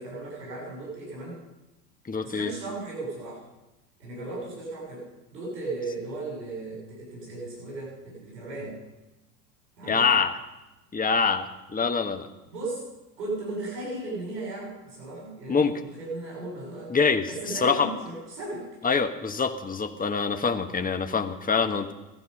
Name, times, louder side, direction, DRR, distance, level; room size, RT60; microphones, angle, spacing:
voice 1, 0.0-1.4 2.2-3.4 4.0-8.8 9.8-10.1 12.5-12.8 13.2-16.9 17.3-18.7, right 2 dB, 90° right, -3 dB, 7.8 m, -36 dB
voice 2, 2.1-2.5 9.9-10.4 10.9-12.3 15.5-15.7 16.9-17.9 18.8-21.9, left 5 dB, 15° left, 7 dB, 1.4 m, -25 dB
17.0 x 14.5 x 5.5 m, 1.0 s
hypercardioid pair, 90°, 49 cm